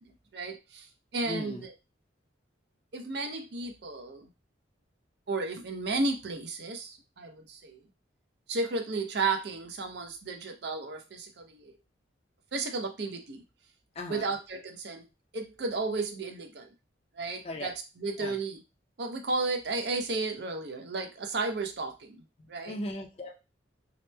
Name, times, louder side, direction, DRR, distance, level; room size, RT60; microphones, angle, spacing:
voice 1, 0.0-0.9 1.1-1.7 2.9-4.3 5.3-7.8 8.5-11.8 12.5-13.4 14.1-15.0 15.3-16.7 17.1-18.6 19.0-22.2 22.5-22.8, right 3 dB, 55° right, 4 dB, 0.5 m, -33 dB
voice 2, 1.3-1.6 14.0-14.3 17.4-17.7 18.2-18.3 22.6-23.4, left 1 dB, 30° left, 1 dB, 0.4 m, -37 dB
2.9 x 2.0 x 3.2 m, 0.27 s
head